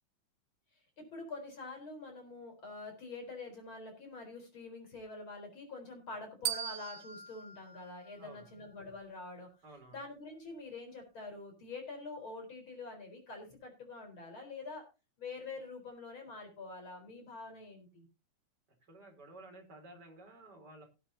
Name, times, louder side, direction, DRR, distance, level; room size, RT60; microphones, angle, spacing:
voice 1, 1.0-9.5 9.9-14.9 15.2-18.1, left 3 dB, 35° left, 4 dB, 4.7 m, -46 dB
sound 1, 6.5-8.7, right 10 dB, 90° right, 2.7 m, -40 dB
voice 2, 8.2-8.5 9.6-10.0 18.9-20.8, right 2 dB, 30° right, 2 dB, 4.1 m, -53 dB
18.5 x 8.9 x 2.7 m, 0.28 s
omnidirectional pair, 3.8 m